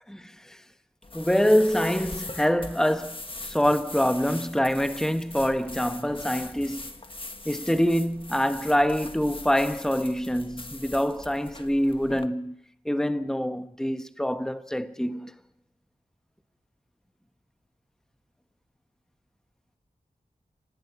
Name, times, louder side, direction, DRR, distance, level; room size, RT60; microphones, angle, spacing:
voice 1, 0.1-0.6 1.1-3.1 3.4-6.8 7.4-12.6 12.8-15.3, equal, 5° left, 1.3 m, -25 dB
sound 1, 1.0-12.3, left 2 dB, 35° left, 1.6 m, -41 dB
26.5 x 18.5 x 6.1 m
cardioid pair, 45°, 16 cm